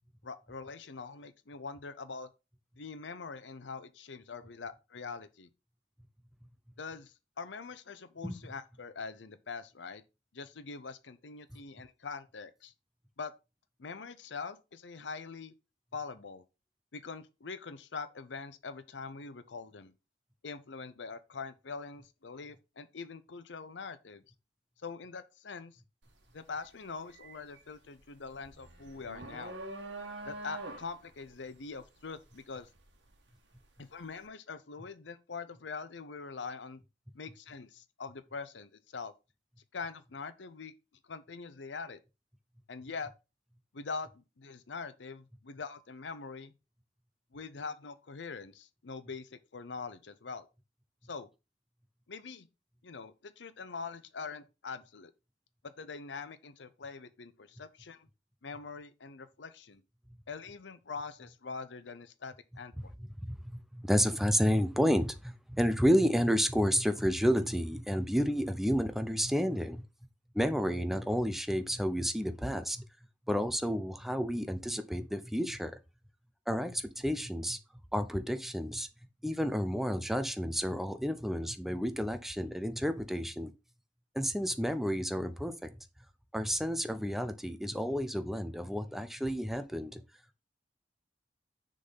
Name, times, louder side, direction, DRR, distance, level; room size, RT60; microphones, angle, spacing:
voice 1, 0.2-2.3 2.8-5.5 6.8-10.0 10.3-12.7 13.2-13.3 13.8-15.5 15.9-16.4 16.9-19.9 20.4-24.2 24.8-25.8 26.3-29.6 30.2-32.7 33.8-36.8 37.1-39.1 39.7-40.7 41.0-42.0 42.7-43.1 43.7-46.5 47.3-50.5 51.1-51.3 52.1-52.5 52.8-55.1 55.6-58.1 58.4-59.8 60.3-62.9, left 4 dB, 80° left, 0.7 m, -43 dB
sound 1, 26.0-26.3 26.7-33.7, right 2 dB, 90° right, 1.5 m, -45 dB
voice 2, 63.2-69.8 70.3-72.8 73.3-75.7 76.5-77.6 77.9-78.9 79.2-83.5 84.1-85.7 86.3-90.0, equal, ahead, 0.6 m, -31 dB
6.6 x 3.9 x 5.6 m
head